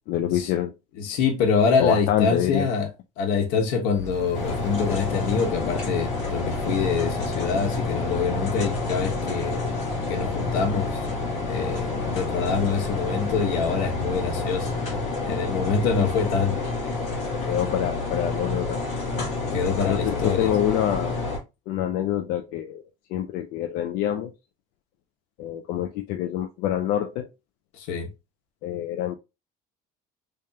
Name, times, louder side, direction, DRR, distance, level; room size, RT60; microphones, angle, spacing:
voice 1, 0.1-0.7 1.8-2.7 17.5-18.8 19.9-21.2 21.7-22.8 23.1-24.3 25.4-27.3 28.6-29.2, left 11 dB, 70° left, 0.5 m, -26 dB
voice 2, 1.0-2.9 3.2-9.7 10.1-11.0 11.4-14.7 15.2-16.6 19.5-20.5 27.7-28.1, left 5 dB, 90° left, 1.2 m, -25 dB
sound 1, 3.9-17.8, left 1 dB, 20° left, 1.0 m, -40 dB
sound 2, 4.3-21.4, left 3 dB, 50° left, 1.9 m, -29 dB
3.4 x 3.4 x 2.8 m
cardioid pair, 165°, 16 cm